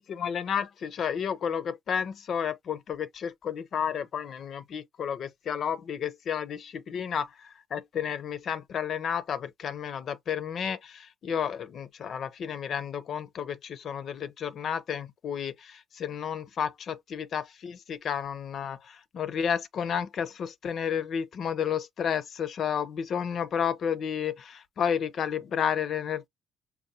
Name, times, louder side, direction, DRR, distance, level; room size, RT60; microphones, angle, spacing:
voice 1, 0.0-26.3, left 8 dB, 55° left, 0.6 m, -32 dB
5.4 x 2.2 x 2.7 m
supercardioid pair, 80°, 0 cm